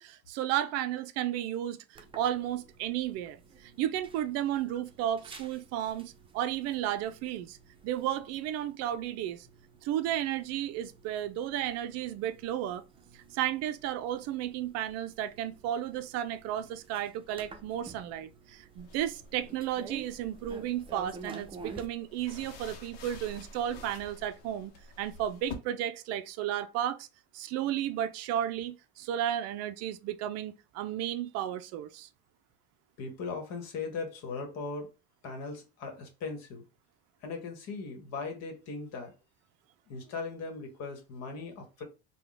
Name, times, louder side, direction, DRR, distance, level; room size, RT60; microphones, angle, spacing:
voice 1, 0.0-7.6 7.8-9.5 9.8-12.8 13.1-27.1 27.3-32.1, right 11 dB, 55° right, 0.4 m, -33 dB
sound 1, 1.9-21.9, right 4 dB, 15° right, 0.7 m, -51 dB
sound 2, 18.8-25.5, left 5 dB, 75° left, 0.8 m, -49 dB
voice 2, 33.0-34.9 35.2-36.6 37.2-39.1 39.9-41.8, left 4 dB, 55° left, 1.2 m, -38 dB
3.6 x 2.3 x 3.4 m
hypercardioid pair, 90°, 30 cm